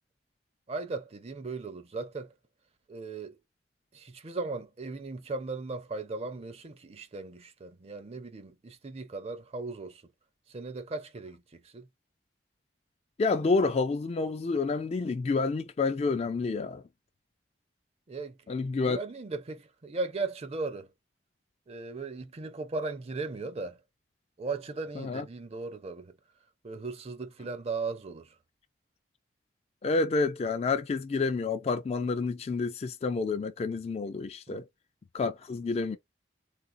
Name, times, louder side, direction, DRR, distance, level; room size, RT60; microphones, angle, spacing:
voice 1, 0.7-2.3 2.9-3.4 3.9-10.0 10.5-11.9 18.1-18.6 18.8-20.9 21.7-23.8 24.4-26.1 26.6-28.3 34.5-34.6, right 3 dB, 35° right, 0.5 m, -37 dB
voice 2, 13.2-16.8 18.5-19.0 25.0-25.3 29.8-34.6 35.1-36.0, left 4 dB, 35° left, 0.3 m, -29 dB
3.7 x 2.4 x 2.5 m
head